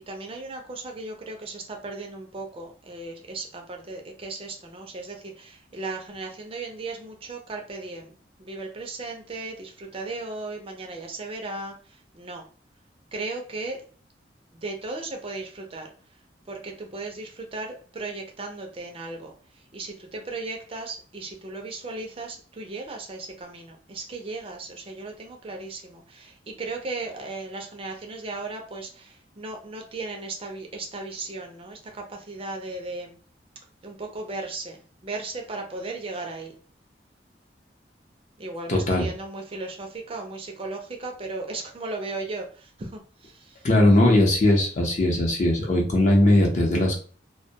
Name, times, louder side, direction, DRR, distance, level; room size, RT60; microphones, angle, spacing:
voice 1, 0.0-8.1 8.4-11.7 12.1-12.4 13.1-13.8 14.5-15.9 16.5-19.3 19.7-33.2 33.8-34.8 35.0-36.5 38.4-42.5 42.8-43.3, right 3 dB, 30° right, 2 dB, 0.4 m, -36 dB
voice 2, 38.7-39.1 43.6-47.0, left 1 dB, 45° left, 0 dB, 0.7 m, -19 dB
2.2 x 2.1 x 2.7 m, 0.41 s
head